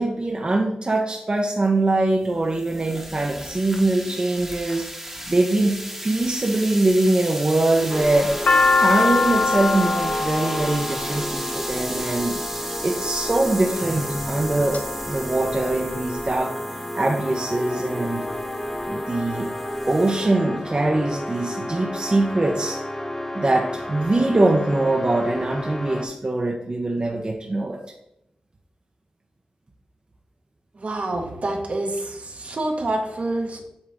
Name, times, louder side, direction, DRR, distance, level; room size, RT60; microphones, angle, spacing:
voice 1, 0.0-8.3 8.8-12.3 12.8-18.3 18.9-19.5 19.9-22.8 23.3-27.8, right 2 dB, 40° right, 0 dB, 0.8 m, -23 dB
sound 1, 1.9-20.1, right 1 dB, 10° right, 1.1 m, -36 dB
sound 2, 7.9-26.1, left 1 dB, 15° left, 0.9 m, -32 dB
sound 3, 8.0-12.2 13.1-13.5 14.1-14.8 15.1-15.2 15.4-16.2, left 3 dB, 65° left, 0.5 m, -22 dB
voice 2, 30.8-33.6, right 2 dB, 60° right, 2 dB, 1.3 m, -27 dB
8.1 x 3.6 x 3.5 m, 0.81 s
cardioid pair, 50°, 3 cm